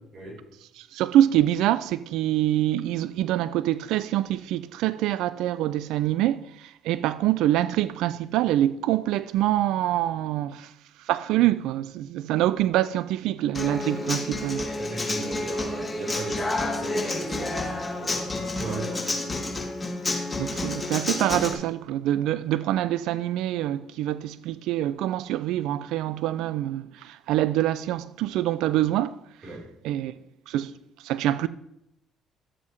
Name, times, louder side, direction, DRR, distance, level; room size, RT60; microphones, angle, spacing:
voice 1, 0.9-10.7 11.1-14.6 20.4-29.2 29.8-30.1 30.5-30.7 31.0-31.5, right 13 dB, 75° right, 0.4 m, -25 dB
Human voice / Acoustic guitar, 13.5-21.5, left 2 dB, 20° left, 2.6 m, -29 dB
voice 2, 14.8-19.0 29.4-29.6, right 3 dB, 45° right, 4.2 m, -38 dB
12.0 x 7.4 x 3.1 m
hypercardioid pair, 55°, 0 cm